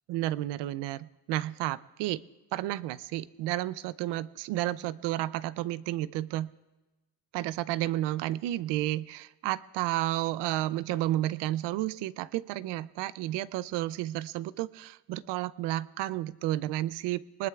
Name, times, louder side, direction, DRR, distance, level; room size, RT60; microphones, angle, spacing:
voice 1, 0.1-2.2 2.5-6.5 7.3-17.5, right 15 dB, 85° right, 18 dB, 0.6 m, -31 dB
22.5 x 20.0 x 2.4 m, 1.1 s
cardioid pair, 120°, 41 cm